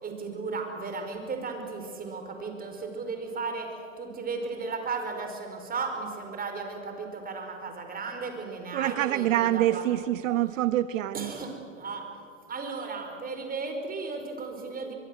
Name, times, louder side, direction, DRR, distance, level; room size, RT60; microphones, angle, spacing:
voice 1, 0.0-9.8 11.1-14.9, right 4 dB, 20° right, 4 dB, 5.1 m, -35 dB
voice 2, 8.7-11.3, right 14 dB, 75° right, 15 dB, 0.8 m, -26 dB
24.0 x 22.5 x 7.9 m, 2.6 s
hypercardioid pair, 110°, 40 cm